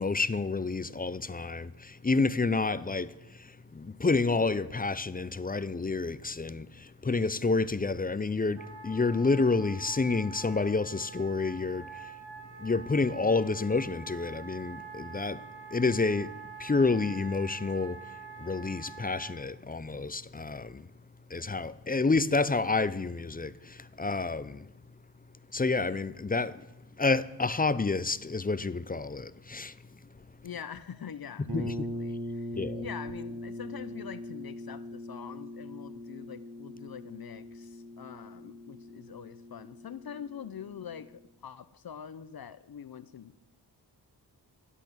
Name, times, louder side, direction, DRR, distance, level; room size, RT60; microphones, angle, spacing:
voice 1, 0.0-3.1 3.7-12.1 12.6-15.4 15.7-16.3 16.6-18.0 18.4-20.9 21.3-24.7 25.5-26.6 27.0-29.7 31.5-31.7 32.5-32.8, left 3 dB, 20° left, 0.6 m, -29 dB
Wind instrument woodwind instrument, 8.5-19.4, right 5 dB, 90° right, 3.3 m, -46 dB
voice 2, 30.4-43.4, left 8 dB, 55° left, 0.7 m, -44 dB
sound 1, 31.5-41.1, left 1 dB, 65° right, 3.5 m, -41 dB
16.5 x 8.4 x 7.0 m
cardioid pair, 60°, 43 cm